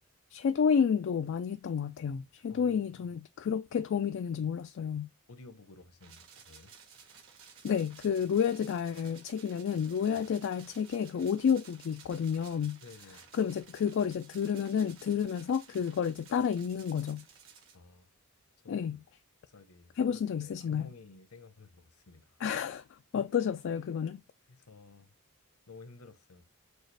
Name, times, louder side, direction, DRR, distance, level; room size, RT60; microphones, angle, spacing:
voice 1, 0.3-5.1 7.6-12.8 13.3-17.3 18.7-19.0 20.0-20.9 22.4-24.2, left 7 dB, 55° left, 0.3 m, -30 dB
voice 2, 2.5-3.0 5.3-6.7 10.1-10.3 12.8-13.2 17.7-18.1 18.6-19.0 19.5-22.4 24.5-25.1 25.7-26.4, left 3 dB, 70° left, 0.8 m, -53 dB
sound 1, 6.0-17.7, right 6 dB, 60° right, 1.8 m, -55 dB
6.4 x 2.4 x 3.2 m
head